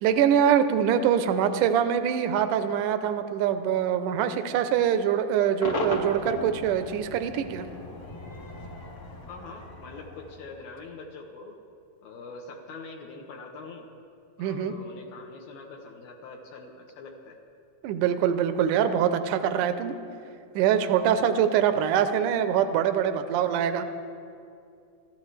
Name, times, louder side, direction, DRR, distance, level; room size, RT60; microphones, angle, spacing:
voice 1, 0.0-7.7 14.4-14.7 17.8-20.0 20.6-23.8, right 9 dB, 80° right, 8 dB, 2.0 m, -24 dB
Cheering / Crowd / Fireworks, 5.6-10.9, left 2 dB, 55° left, 1.3 m, -36 dB
voice 2, 9.2-11.6 12.0-13.9 14.4-17.4, left 3 dB, 75° left, 0 dB, 2.7 m, -43 dB
29.0 x 13.0 x 3.3 m, 2.5 s
omnidirectional pair, 4.4 m